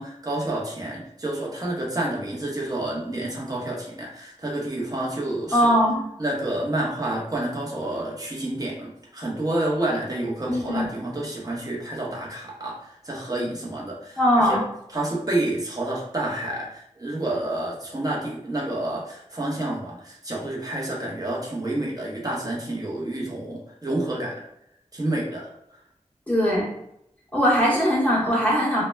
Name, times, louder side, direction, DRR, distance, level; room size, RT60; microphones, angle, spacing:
voice 1, 0.0-5.7 6.2-14.6 14.9-24.4 24.9-25.8, right 1 dB, 30° right, -3 dB, 0.7 m, -29 dB
voice 2, 5.5-6.0 10.5-10.9 14.2-14.6 26.3-26.7 27.3-28.8, equal, 10° left, -6 dB, 0.7 m, -20 dB
2.2 x 2.0 x 3.2 m, 0.77 s
wide cardioid pair, 65°, 12 cm